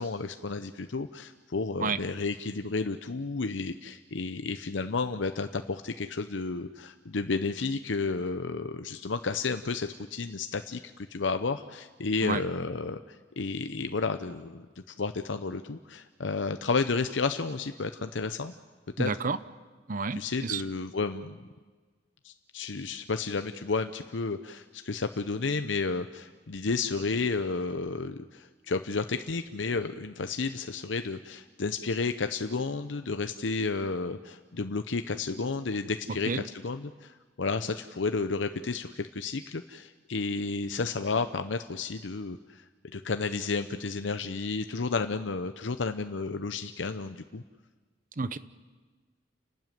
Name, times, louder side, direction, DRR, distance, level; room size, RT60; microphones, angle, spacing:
voice 1, 0.0-13.0 13.4-14.7 15.0-18.5 19.0-19.1 20.2-21.4 22.2-42.6 42.9-47.4, left 4 dB, 85° left, 9 dB, 0.8 m, -32 dB
voice 2, 19.0-19.4 19.9-20.6 36.1-36.4 48.2-48.4, right 4 dB, 45° right, 15 dB, 0.8 m, -30 dB
30.0 x 12.5 x 9.3 m, 1.4 s
head